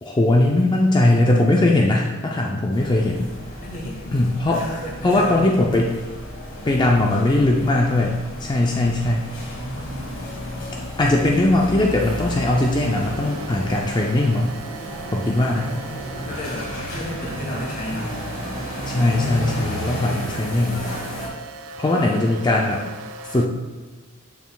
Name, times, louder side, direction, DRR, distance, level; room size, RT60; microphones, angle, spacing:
voice 1, 0.0-3.3 4.1-4.6 5.0-6.0 6.6-9.3 11.0-14.6 15.1-15.7 18.9-20.9 21.8-22.8 23.3-23.6, left 2 dB, 20° left, -1 dB, 0.4 m, -20 dB
sound 1, 2.7-21.3, equal, 75° left, 1.6 m, -33 dB
voice 2, 3.6-4.2 4.6-5.6 9.4-10.1 15.3-18.1 22.0-22.2, equal, 45° left, -4 dB, 1.7 m, -33 dB
sound 2, 11.8-23.5, right 4 dB, 85° right, 0.4 m, -38 dB
6.9 x 6.2 x 2.2 m, 1.3 s
head